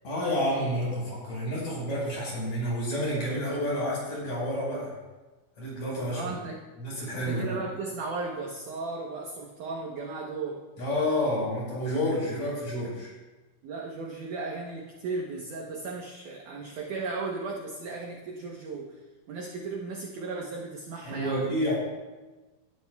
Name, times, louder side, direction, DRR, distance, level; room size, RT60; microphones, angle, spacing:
voice 1, 0.0-4.9 5.6-6.3 6.8-7.6 10.8-13.1 21.0-21.7, equal, 40° left, -5 dB, 5.9 m, -29 dB
voice 2, 6.1-6.6 7.1-10.7 13.6-19.0 19.3-21.5, right 3 dB, 75° right, -1 dB, 1.8 m, -36 dB
19.0 x 12.5 x 2.3 m, 1.2 s
omnidirectional pair, 5.1 m